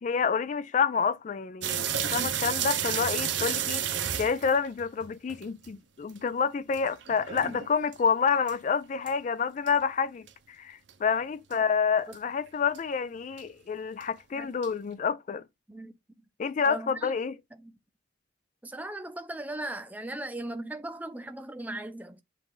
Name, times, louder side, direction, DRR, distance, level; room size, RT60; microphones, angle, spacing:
voice 1, 0.0-3.8 4.2-15.4 16.4-17.4, left 6 dB, 40° left, 0.3 m, -28 dB
sound 1, 1.6-5.7 6.1-6.2 6.7-8.0 8.5-8.6 9.1-9.2 9.7-9.8 10.3-10.4 10.9-11.0 11.5-11.6 12.1-12.2 12.7-12.8 13.4-13.5 14.0-14.1 14.6-14.7, right 9 dB, 75° right, 0.8 m, -31 dB
voice 2, 16.7-17.1 17.6-17.8 18.6-22.2, right 1 dB, 10° right, 0.6 m, -38 dB
7.6 x 2.6 x 4.8 m
head